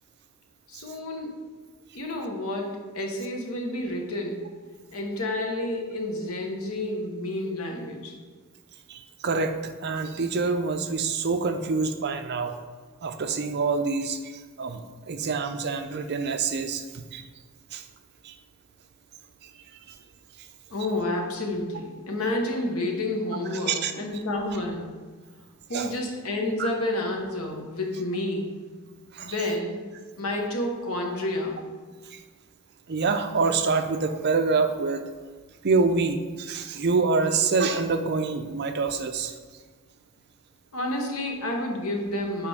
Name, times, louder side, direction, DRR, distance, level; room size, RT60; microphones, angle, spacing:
voice 1, 0.7-1.3 1.9-4.5 4.9-8.1 20.7-24.9 25.7-28.5 29.2-29.8 30.2-31.6 40.7-42.5, left 1 dB, 90° left, 1 dB, 1.1 m, -30 dB
voice 2, 8.9-12.5 13.0-17.2 17.7-17.8 18.2-18.3 19.4-19.5 19.9-20.0 23.7-23.9 25.7-25.9 26.6-26.7 29.1-29.3 32.1-32.2 32.9-35.0 35.6-39.3, right 4 dB, 50° right, 8 dB, 0.5 m, -26 dB
7.3 x 4.7 x 3.5 m, 1.5 s
head